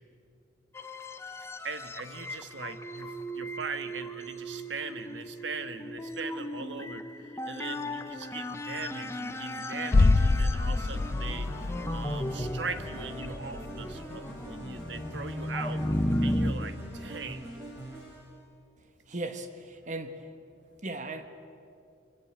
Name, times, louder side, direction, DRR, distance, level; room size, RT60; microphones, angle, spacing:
sound 1, 0.7-16.5, left 1 dB, 15° left, 1.2 m, -35 dB
voice 1, 1.6-11.6 11.9-15.9 16.2-17.5, right 4 dB, 75° right, 9 dB, 1.7 m, -40 dB
sound 2, 9.9-15.7 15.9-16.0, left 3 dB, 45° left, 0.5 m, -28 dB
sound 3, 10.8-18.4, right 1 dB, 15° right, 7.3 m, -44 dB
voice 2, 19.1-20.2 20.8-21.3, right 2 dB, 40° right, 8 dB, 1.5 m, -37 dB
25.5 x 24.5 x 8.9 m, 2.5 s
head